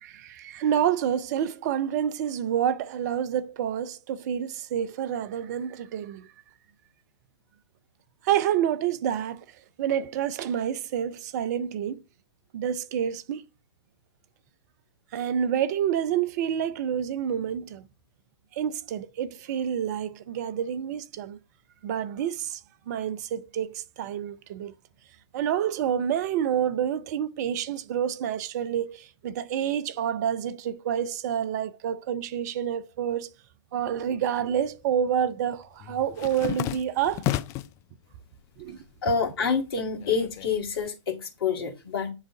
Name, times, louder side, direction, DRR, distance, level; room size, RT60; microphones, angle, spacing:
voice 1, 0.0-6.3 8.2-9.4 9.8-12.0 12.5-13.5 15.1-17.9 18.5-21.4 21.8-22.6 22.9-24.7 25.3-33.3 33.7-37.3 38.6-38.8, right 9 dB, 35° right, 0.6 m, -28 dB
sound 1, 33.9-34.7 35.0-37.8 38.3-38.9 39.2-40.9, left 14 dB, 20° left, 0.4 m, -33 dB
voice 2, 39.0-42.1, left 5 dB, 55° left, 2.1 m, -27 dB
9.7 x 3.7 x 3.6 m
figure-of-eight pair, 115°, 15 cm